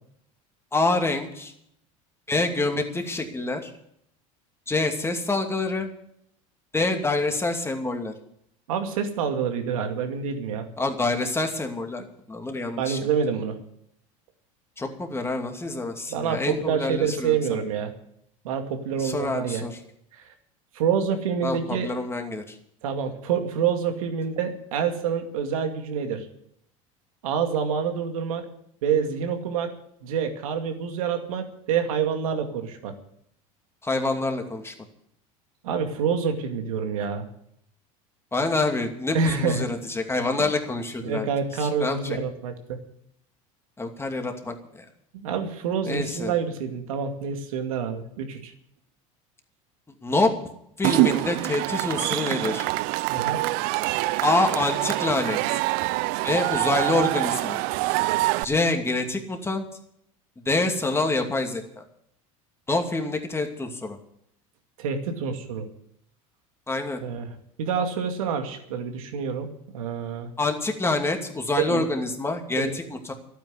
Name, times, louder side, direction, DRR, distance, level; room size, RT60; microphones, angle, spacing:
voice 1, 0.7-1.5 2.3-3.7 4.7-5.9 6.7-8.1 10.8-13.0 14.8-17.6 19.0-19.8 21.4-22.6 33.8-34.7 38.3-41.3 41.6-42.2 43.8-44.8 45.8-46.3 50.0-50.3 50.8-52.7 54.2-55.4 56.2-57.6 58.4-59.6 60.5-61.8 62.7-64.0 66.7-67.0 70.4-73.1, left 2 dB, 15° left, 4 dB, 2.6 m, -26 dB
voice 2, 8.7-10.7 12.8-13.6 16.1-17.9 18.4-19.6 20.2-20.3 20.7-21.9 22.8-26.3 27.2-28.5 28.8-29.7 30.0-32.9 35.6-37.2 39.1-39.7 41.0-42.8 45.1-48.5 53.1-53.4 64.8-65.7 67.0-67.3 67.6-69.5 69.7-70.3 71.6-71.9 72.6-72.8, right 7 dB, 80° right, 5 dB, 2.3 m, -27 dB
Cheering / Crowd, 50.8-58.4, right 20 dB, 65° right, 0.5 m, -25 dB
12.0 x 9.2 x 9.8 m, 0.72 s
hypercardioid pair, 95°, 18 cm